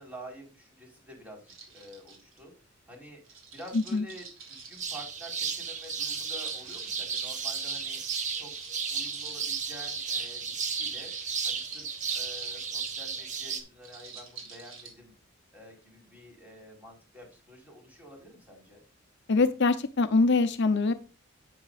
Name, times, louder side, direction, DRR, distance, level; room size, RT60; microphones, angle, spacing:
voice 1, 0.0-2.5 2.9-3.2 3.5-8.0 8.4-8.5 8.9-11.1 11.4-15.1 15.5-18.8, equal, 10° right, 0 dB, 4.3 m, -49 dB
sound 1, 1.5-2.4 3.3-5.0 5.7-13.1 13.8-14.9, right 5 dB, 90° right, 3.4 m, -45 dB
sound 2, 4.8-13.6, right 6 dB, 40° right, 1.4 m, -34 dB
voice 2, 19.3-20.9, left 3 dB, 60° left, 10 dB, 0.7 m, -23 dB
10.5 x 8.6 x 2.5 m, 0.32 s
head